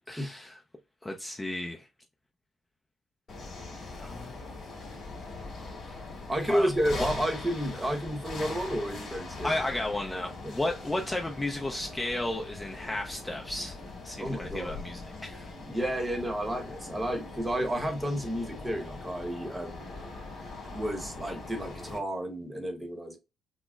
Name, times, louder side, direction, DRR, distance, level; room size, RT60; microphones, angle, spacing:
voice 1, 0.1-0.6 1.0-1.9 4.0-4.4 5.8-6.0 6.5-6.7 9.4-13.8 14.0-15.5, left 1 dB, 15° left, 0.5 m, -33 dB
sound 1, 3.3-22.0, left 3 dB, 50° left, 2.1 m, -41 dB
voice 2, 6.3-9.5 10.4-10.5 14.2-14.8 15.7-20.0 20.7-23.2, equal, 15° right, 0.9 m, -31 dB
6.0 x 2.0 x 2.3 m
cardioid pair, 90°, 0 cm